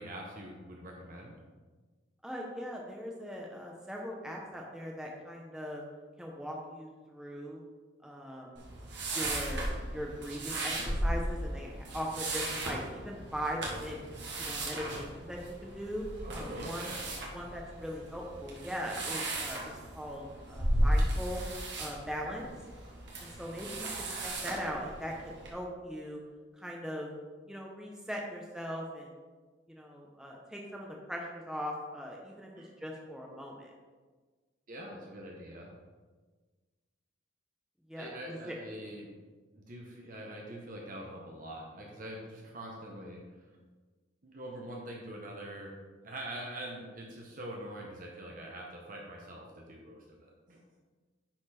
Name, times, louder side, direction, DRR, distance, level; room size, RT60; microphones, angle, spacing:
voice 1, 0.0-1.4 16.2-17.0 32.6-32.7 34.7-35.7 37.9-39.1 39.5-43.2 44.2-45.7 46.0-50.6, right 1 dB, 45° right, -1 dB, 1.0 m, -44 dB
voice 2, 2.2-5.8 6.2-7.6 8.0-8.6 9.1-9.7 9.9-14.0 14.4-16.0 16.3-16.9 17.3-21.4 21.8-22.5 23.2-26.2 26.6-27.1 27.5-29.1 29.7-33.7 37.9-38.5, equal, 5° right, -2 dB, 0.9 m, -40 dB
sound 1, 8.6-25.5, right 1 dB, 60° right, 1.7 m, -35 dB
9.9 x 4.3 x 4.3 m, 1.4 s
head